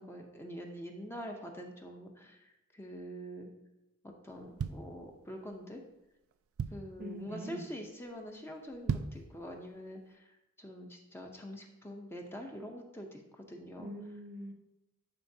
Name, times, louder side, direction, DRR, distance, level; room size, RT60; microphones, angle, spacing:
voice 1, 0.0-3.5 4.0-5.8 6.7-13.9, equal, 10° left, 2 dB, 0.6 m, -45 dB
sound 1, 4.3-5.5 6.0-6.1 6.3-7.1 7.5-7.8 8.1-8.2 8.7-9.3 9.7-9.8, right 6 dB, 75° right, 0.3 m, -36 dB
voice 2, 7.0-7.7 13.8-14.5, equal, 45° right, 5 dB, 0.7 m, -43 dB
11.5 x 4.4 x 2.7 m, 0.91 s
head